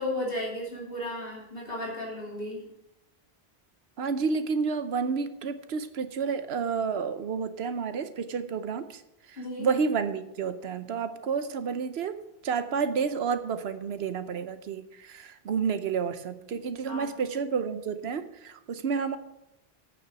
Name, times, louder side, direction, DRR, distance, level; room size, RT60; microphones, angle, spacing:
voice 1, 0.0-2.6 9.4-9.7 16.9-17.1, left 1 dB, 65° left, -3 dB, 2.9 m, -34 dB
voice 2, 4.0-9.0 9.3-19.2, right 5 dB, 90° right, 11 dB, 1.0 m, -30 dB
8.6 x 6.4 x 7.7 m, 0.88 s
omnidirectional pair, 1.0 m